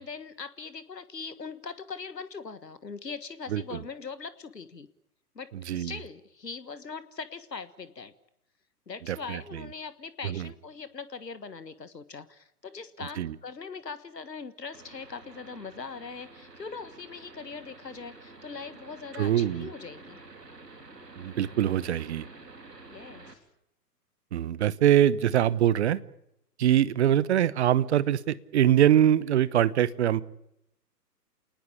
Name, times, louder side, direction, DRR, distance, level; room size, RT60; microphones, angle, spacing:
voice 1, 0.0-4.9 5.3-8.1 8.9-20.2 22.9-23.4, left 5 dB, 80° left, 14 dB, 1.6 m, -41 dB
voice 2, 9.1-9.4 10.2-10.5 13.2-13.3 19.2-19.7 21.2-22.3 24.3-26.0 26.6-30.2, right 11 dB, 45° right, 19 dB, 1.1 m, -23 dB
sound 1, 14.7-23.3, right 3 dB, 80° right, 4.0 m, -49 dB
28.5 x 19.5 x 8.7 m, 0.80 s
figure-of-eight pair, 120°, 48 cm